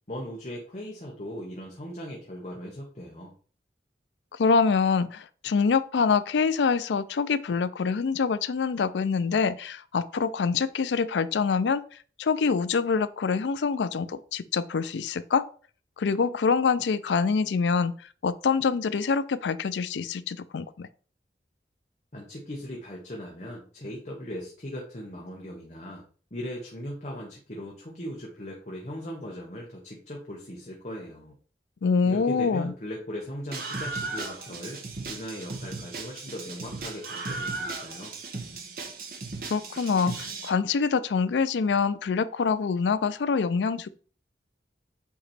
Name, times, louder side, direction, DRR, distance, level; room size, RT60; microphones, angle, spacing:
voice 1, 0.1-3.3 22.1-26.0 26.3-31.3 32.0-34.8 35.1-38.2, equal, 40° left, 1.1 m, -38 dB
voice 2, 4.4-11.8 12.2-15.4 16.0-17.9 18.2-20.9 31.8-32.7 39.5-43.9, left 5 dB, 90° left, 0.4 m, -25 dB
Screaming, 33.5-40.5, right 3 dB, 55° right, 1.2 m, -36 dB
8.3 x 3.0 x 4.2 m
head